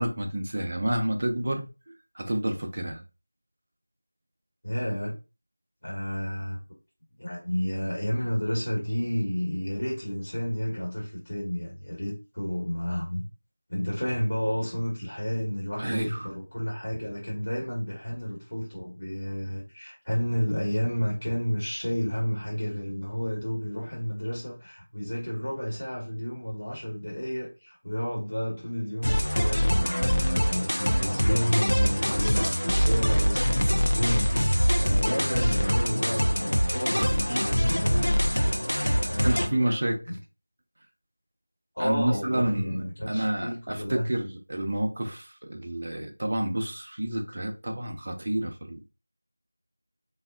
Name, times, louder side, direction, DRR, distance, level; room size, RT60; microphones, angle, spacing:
voice 1, 0.0-1.7 2.1-3.0 15.8-16.3 36.9-37.6 39.2-40.0 41.8-42.8 43.1-48.8, right 1 dB, 35° right, 0.4 m, -29 dB
voice 2, 4.6-5.1 5.8-6.6 7.2-13.3 13.7-38.7 39.0-39.8 40.1-40.2 41.7-44.1, equal, 55° left, 1.2 m, -31 dB
sound 1, 29.0-39.5, equal, 70° left, 0.5 m, -24 dB
3.3 x 2.4 x 2.3 m
figure-of-eight pair, 170°, 0 cm